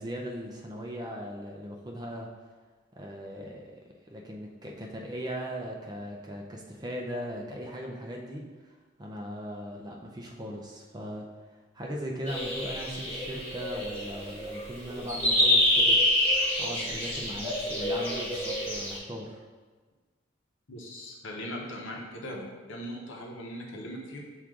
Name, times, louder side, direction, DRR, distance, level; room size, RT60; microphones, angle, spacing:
voice 1, 0.0-2.3 3.0-3.8 4.0-8.7 9.0-11.3 11.7-16.0 16.6-19.4, equal, 20° right, 0 dB, 0.4 m, -38 dB
sound 1, 12.3-19.0, left 1 dB, 10° left, 1.2 m, -27 dB
voice 2, 20.7-24.2, equal, 70° left, -1 dB, 0.8 m, -39 dB
6.1 x 2.4 x 3.6 m, 1.4 s
head